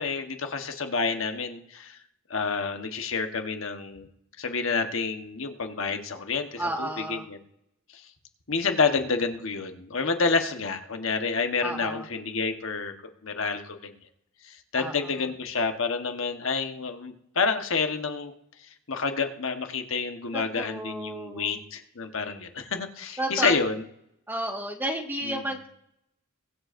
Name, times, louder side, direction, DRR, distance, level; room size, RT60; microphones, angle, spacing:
voice 1, 0.0-2.0 2.3-4.1 4.4-7.4 7.9-8.0 8.5-12.9 13.2-13.9 14.4-18.3 18.9-23.8 25.2-25.4, left 4 dB, 70° left, 6 dB, 1.2 m, -29 dB
voice 2, 6.6-7.3 11.6-12.0 14.8-15.1 20.3-21.6 23.2-23.6 24.3-25.7, right 1 dB, 10° right, 1 dB, 1.6 m, -32 dB
23.0 x 7.8 x 2.5 m, 0.75 s
head